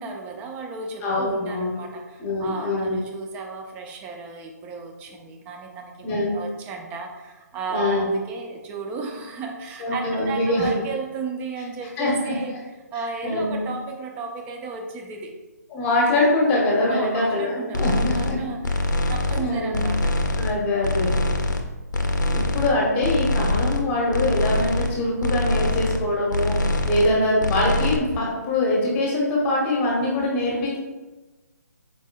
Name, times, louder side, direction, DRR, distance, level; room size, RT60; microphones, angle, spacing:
voice 1, 0.0-12.6 12.9-15.4 16.8-20.2, right 4 dB, 15° right, 2 dB, 0.4 m, -34 dB
voice 2, 1.0-1.8 2.2-3.0 6.0-6.4 7.7-8.1 9.8-10.7 12.0-12.6 13.2-13.6 15.7-18.3 19.3-19.8 20.4-21.2 22.3-30.8, left 1 dB, 20° left, -3 dB, 1.0 m, -23 dB
sound 1, 17.7-18.3 18.6-19.5 19.7-20.6 20.8-21.7 21.9-22.7 23.0-23.8 24.1-24.9 25.2-26.0 26.3-27.1 27.4-28.0, left 2 dB, 90° left, 0.6 m, -24 dB
4.7 x 4.5 x 2.3 m, 1.2 s
figure-of-eight pair, 145°, 10 cm